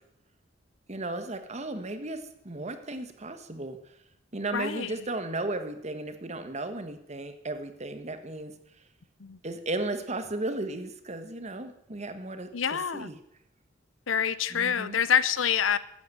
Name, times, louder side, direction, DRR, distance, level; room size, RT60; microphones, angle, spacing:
voice 1, 0.9-3.8 4.3-8.5 9.4-12.5 12.9-13.2 14.5-15.0, right 2 dB, 35° right, 8 dB, 1.4 m, -35 dB
voice 2, 4.5-4.9 9.2-9.4 12.5-13.1 14.1-15.8, left 8 dB, 75° left, 16 dB, 0.7 m, -26 dB
13.0 x 8.8 x 7.7 m, 0.77 s
head